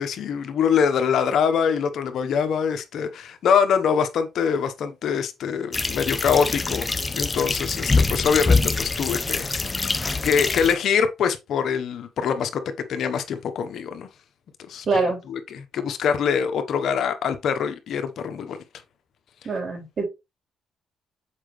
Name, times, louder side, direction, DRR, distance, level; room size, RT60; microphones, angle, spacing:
voice 1, 0.0-6.8 7.1-12.6 12.9-14.1 14.7-14.9 15.3-18.6, left 7 dB, 70° left, 1.1 m, -24 dB
sound 1, 5.7-10.7, left 3 dB, 25° left, 0.7 m, -24 dB
voice 2, 14.9-15.2 19.4-20.0, right 3 dB, 50° right, 4.1 m, -24 dB
7.3 x 4.9 x 3.2 m
cardioid pair, 90°, 0 cm